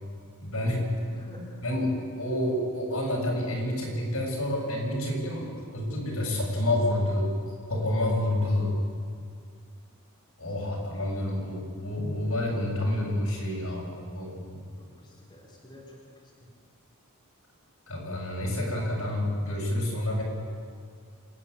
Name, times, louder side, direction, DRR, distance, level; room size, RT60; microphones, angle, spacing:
voice 1, 0.4-0.9 1.6-7.3 7.7-8.8 10.4-14.6 17.9-20.2, left 1 dB, 75° left, -2 dB, 7.3 m, -29 dB
voice 2, 1.1-1.4 10.4-10.8 14.8-16.0 16.4-16.5 18.5-19.2, left 1 dB, 20° left, -5 dB, 4.5 m, -49 dB
27.5 x 11.0 x 9.8 m, 2.2 s
head